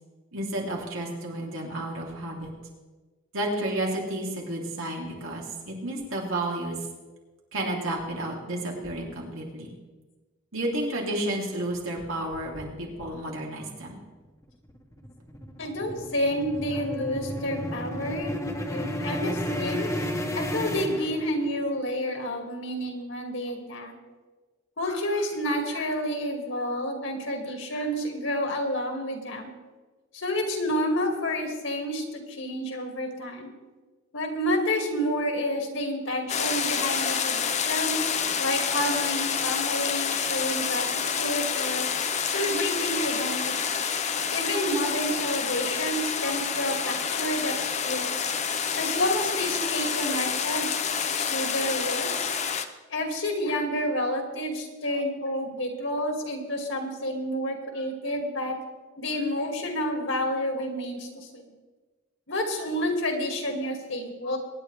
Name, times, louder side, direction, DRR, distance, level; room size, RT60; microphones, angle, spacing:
voice 1, 0.3-2.5 3.3-6.8 7.5-9.7 10.5-14.0, right 1 dB, 85° right, -2 dB, 3.2 m, -31 dB
sound 1, 14.4-21.7, equal, 15° left, 1.3 m, -32 dB
voice 2, 15.6-18.3 18.7-19.9 20.3-23.9 24.8-29.5 30.1-33.5 34.1-38.0 38.3-41.9 42.3-43.8 44.3-48.2 48.8-50.7 51.1-52.3 52.9-58.6 59.0-61.4 62.3-64.4, equal, 65° left, 2 dB, 2.3 m, -29 dB
sound 2, 36.3-52.7, left 7 dB, 35° left, 0.7 m, -28 dB
23.5 x 9.9 x 3.4 m, 1.3 s
head